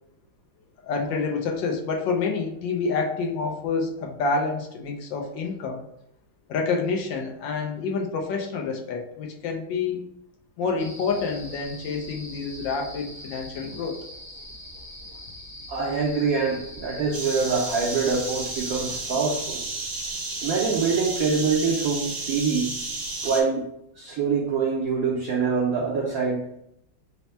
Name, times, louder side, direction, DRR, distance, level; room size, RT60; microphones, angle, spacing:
voice 1, 0.8-5.9 6.5-10.0 10.6-14.0, left 4 dB, 75° left, 1 dB, 1.2 m, -28 dB
sound 1, 10.8-19.0, equal, 20° right, 0.6 m, -42 dB
voice 2, 15.7-19.6 20.4-22.7 23.2-23.7 24.0-26.5, right 5 dB, 85° right, -2 dB, 0.7 m, -25 dB
sound 2, 17.1-23.4, right 3 dB, 55° right, 1.2 m, -32 dB
4.2 x 2.0 x 4.3 m, 0.77 s
omnidirectional pair, 2.2 m